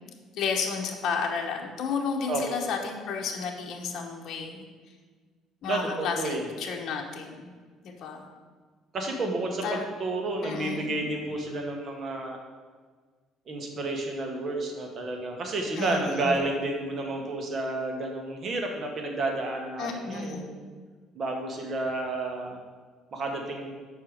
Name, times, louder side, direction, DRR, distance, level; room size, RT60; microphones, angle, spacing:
voice 1, 0.3-4.6 5.6-7.5 7.8-8.3 9.6-9.8 10.4-10.9 15.8-16.4 19.8-20.5, left 5 dB, 55° left, 1 dB, 1.0 m, -32 dB
voice 2, 5.7-6.5 8.9-12.4 13.5-20.7 21.1-22.6 23.1-23.7, right 2 dB, 40° right, 2 dB, 1.2 m, -31 dB
5.6 x 4.6 x 6.4 m, 1.5 s
cardioid pair, 120°, 0 cm